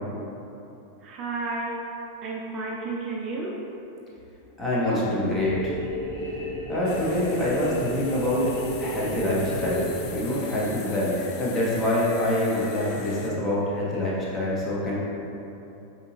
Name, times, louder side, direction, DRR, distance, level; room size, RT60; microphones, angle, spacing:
voice 1, 1.0-1.8 2.2-3.6, right 3 dB, 35° right, -3 dB, 0.4 m, -32 dB
voice 2, 4.6-5.8 6.7-15.0, left 1 dB, 15° left, -7 dB, 1.0 m, -26 dB
sound 1, 5.3-11.1, equal, 85° left, 1.1 m, -33 dB
sound 2, 6.8-13.3, left 6 dB, 45° left, 0.4 m, -42 dB
5.1 x 2.8 x 2.6 m, 3.0 s
figure-of-eight pair, 90°, 0 cm